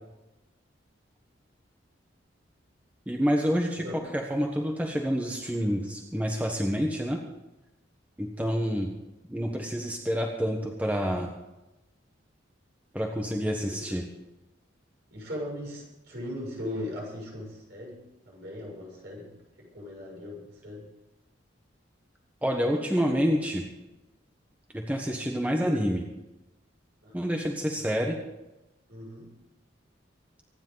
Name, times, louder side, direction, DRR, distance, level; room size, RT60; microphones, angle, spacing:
voice 1, 3.1-3.8 4.1-7.2 8.2-8.9 9.3-11.3 12.9-14.0 22.4-23.7 24.7-26.1 27.1-28.2, equal, 10° right, 1 dB, 1.3 m, -28 dB
voice 2, 13.6-14.0 15.1-20.9 27.0-27.1 27.7-27.8 28.9-29.4, left 1 dB, 60° right, -3 dB, 6.9 m, -39 dB
24.5 x 10.5 x 4.0 m, 1.0 s
head